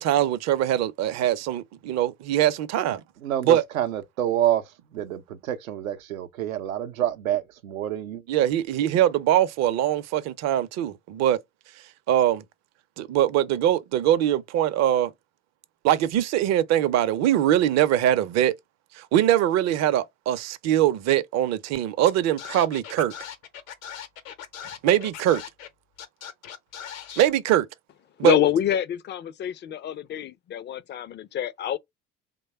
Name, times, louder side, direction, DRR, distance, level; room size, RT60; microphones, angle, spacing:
voice 1, 0.0-3.0 3.4-3.6 8.3-11.4 12.1-12.4 13.0-15.1 15.8-18.5 19.0-23.1 24.8-25.4 27.2-27.7 28.2-28.4, right 11 dB, 40° right, 0.5 m, -22 dB
voice 2, 3.2-4.6 4.9-8.2, right 12 dB, 85° right, 0.6 m, -27 dB
Scratching (performance technique), 22.1-22.2 22.4-25.7 26.0-27.3, left 9 dB, 80° left, 0.8 m, -39 dB
voice 3, 28.2-31.8, left 10 dB, 30° left, 0.4 m, -26 dB
3.1 x 2.2 x 4.2 m
hypercardioid pair, 65°, 40 cm